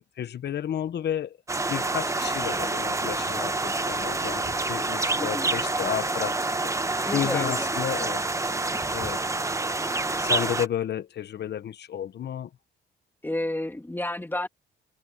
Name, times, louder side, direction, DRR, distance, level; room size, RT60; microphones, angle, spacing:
voice 1, 0.0-1.4 1.7-6.4 6.8-8.2 8.9-9.2 10.2-12.5, left 10 dB, 60° left, 1.2 m, -32 dB
sound 1, 1.5-10.7, right 2 dB, 15° right, 1.1 m, -27 dB
voice 2, 5.2-5.5 7.1-7.7 13.2-14.5, left 1 dB, 10° left, 2.5 m, -31 dB
cardioid pair, 90°, 20 cm